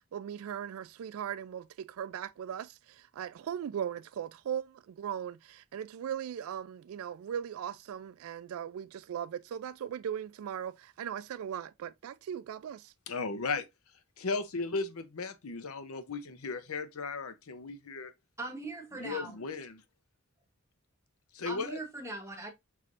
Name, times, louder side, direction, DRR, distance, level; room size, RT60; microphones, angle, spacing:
voice 1, 0.1-2.7 3.2-12.9, right 9 dB, 80° right, 0.3 m, -38 dB
voice 2, 13.1-13.7 14.2-18.1 19.0-19.8 21.3-21.8, left 4 dB, 90° left, 0.7 m, -36 dB
voice 3, 18.4-19.4 21.4-22.5, right 2 dB, 15° right, 0.9 m, -40 dB
5.6 x 3.1 x 2.5 m
head